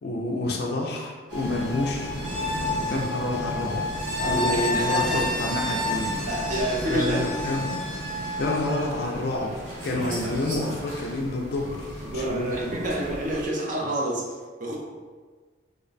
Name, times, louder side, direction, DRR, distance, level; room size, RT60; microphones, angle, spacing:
voice 1, 0.0-2.2 2.9-3.8 4.2-6.1 6.9-7.7 8.4-9.5 9.8-12.7, left 2 dB, 55° left, 0 dB, 0.4 m, -28 dB
sound 1, 1.3-13.5, left 1 dB, 70° right, 0.9 m, -31 dB
voice 2, 4.1-5.2 6.3-7.3 12.0-14.8, right 1 dB, 40° right, -2 dB, 0.6 m, -28 dB
3.3 x 2.1 x 3.9 m, 1.5 s
head